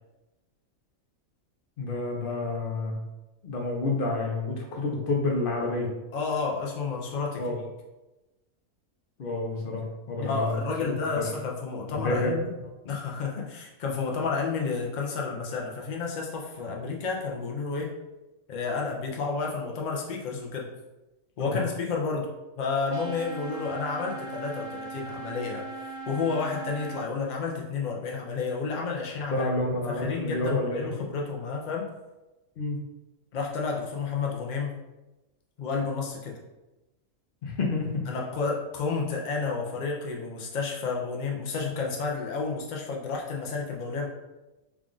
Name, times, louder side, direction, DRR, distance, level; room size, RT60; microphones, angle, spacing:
voice 1, 1.8-3.0 3.4-5.9 7.4-7.6 9.2-11.3 11.9-12.4 21.4-21.6 29.3-30.9 32.6-32.8 37.4-37.9, left 2 dB, 50° left, 0 dB, 0.7 m, -29 dB
voice 2, 6.1-7.4 10.2-12.5 12.8-17.9 18.5-20.7 21.4-22.3 22.6-29.5 29.9-31.8 33.3-34.8 35.6-36.4 38.1-44.1, left 4 dB, 85° left, -1 dB, 0.4 m, -31 dB
sound 1, 22.9-27.0, right 3 dB, 70° right, 1.0 m, -39 dB
3.5 x 2.4 x 3.7 m, 1.0 s
omnidirectional pair, 1.5 m